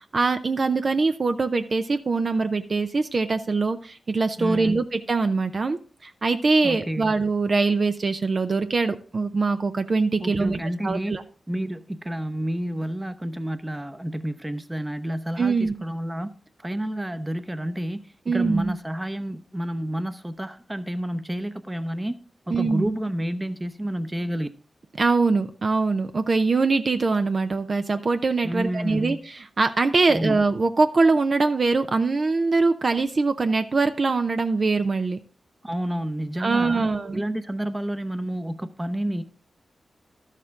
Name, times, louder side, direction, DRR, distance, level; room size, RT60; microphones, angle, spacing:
voice 1, 0.1-10.6 10.8-11.2 15.4-15.7 18.3-18.7 22.5-22.9 25.0-35.2 36.4-37.2, right 3 dB, 55° right, 0.6 m, -23 dB
voice 2, 4.4-4.8 6.6-7.1 10.2-16.3 16.6-22.1 22.5-24.5 28.4-29.2 30.1-30.4 35.6-39.2, right 1 dB, 15° right, 0.8 m, -30 dB
12.0 x 6.6 x 3.6 m
cardioid pair, 50°, 0 cm